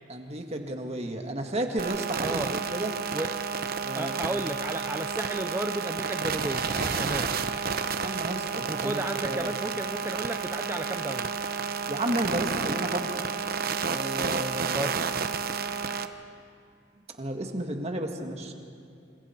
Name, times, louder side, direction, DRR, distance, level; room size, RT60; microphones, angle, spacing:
voice 1, 0.1-2.9 3.8-4.5 8.0-9.5 11.9-13.0 13.9-14.9 17.2-18.5, right 1 dB, 35° right, 4 dB, 1.9 m, -32 dB
sound 1, 1.8-16.1, right 5 dB, 55° right, 0.9 m, -31 dB
voice 2, 2.2-2.6 3.1-3.3 3.9-6.7 7.0-7.3 8.7-11.3 14.7-14.9, right 1 dB, 15° right, 5 dB, 0.5 m, -33 dB
sound 2, 5.1-10.1, equal, 25° left, 5.9 m, -42 dB
27.0 x 27.0 x 4.6 m, 2.4 s
head